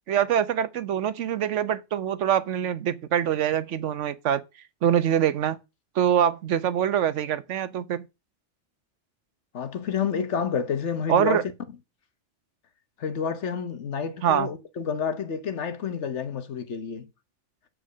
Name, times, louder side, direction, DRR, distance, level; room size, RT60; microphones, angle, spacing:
voice 1, 0.1-4.4 4.8-5.6 5.9-8.1 11.1-11.4 14.2-14.5, right 9 dB, 80° right, 1.1 m, -24 dB
voice 2, 9.5-11.5 13.0-17.1, left 6 dB, 75° left, 1.3 m, -29 dB
8.4 x 4.8 x 6.2 m
omnidirectional pair, 1.2 m